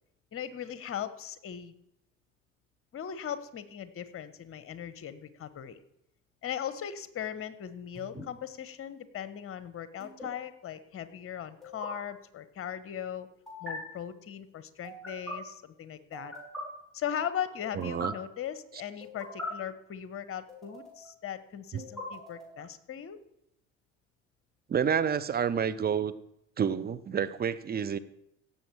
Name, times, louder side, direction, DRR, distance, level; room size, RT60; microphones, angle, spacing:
voice 1, 0.3-1.7 2.9-5.8 6.4-13.3 13.6-16.3 16.9-23.2, left 9 dB, 40° left, 14 dB, 1.2 m, -38 dB
sound 1, 7.9-8.2 10.0-10.3 11.6-11.9 13.5-13.7 14.8-15.3 16.1-16.6 17.6-18.1 19.0-19.5 20.5-21.1 21.8-22.6, left 1 dB, ahead, 5.7 m, -42 dB
voice 2, 17.7-18.1 21.7-21.9 24.7-26.1 26.6-28.0, right 7 dB, 25° right, 12 dB, 0.8 m, -29 dB
17.0 x 7.1 x 4.8 m, 0.77 s
hypercardioid pair, 65°, 36 cm